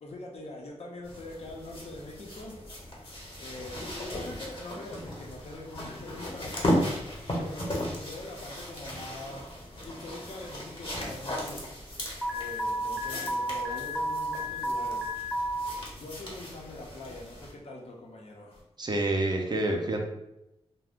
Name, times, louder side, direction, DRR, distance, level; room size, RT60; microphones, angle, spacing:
voice 1, 0.0-2.6 3.4-6.8 7.3-9.5 9.8-11.6 12.3-15.0 15.7-18.6, left 2 dB, 65° left, -1 dB, 0.7 m, -43 dB
sound 1, 1.0-17.5 18.5-18.6, equal, 45° left, 1.1 m, -36 dB
Alarm, 12.2-15.7, equal, ahead, 0.6 m, -32 dB
voice 2, 18.8-20.0, right 2 dB, 40° right, 2 dB, 0.5 m, -28 dB
2.4 x 2.1 x 3.5 m, 0.87 s
cardioid pair, 60°, 11 cm